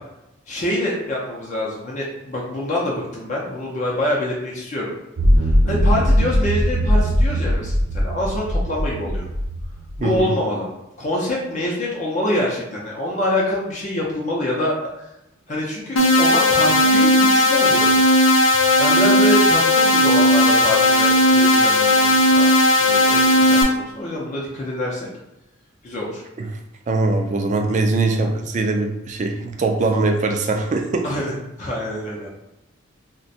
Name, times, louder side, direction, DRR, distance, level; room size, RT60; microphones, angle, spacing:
voice 1, 0.5-4.9 5.4-9.3 10.0-10.7 11.0-15.1 15.5-17.9 18.8-22.5 22.8-25.1 25.8-26.2 28.2-28.3 31.0-31.3 31.6-32.3, left 1 dB, 35° left, -4 dB, 0.6 m, -25 dB
sound 1, 5.2-10.2, equal, 65° right, 0.7 m, -19 dB
voice 2, 10.0-10.3 26.4-26.5 26.9-31.1, right 3 dB, 35° right, 3 dB, 0.3 m, -21 dB
sound 2, 16.0-23.6, left 1 dB, 80° left, 0.6 m, -15 dB
2.5 x 2.2 x 4.0 m, 0.92 s
head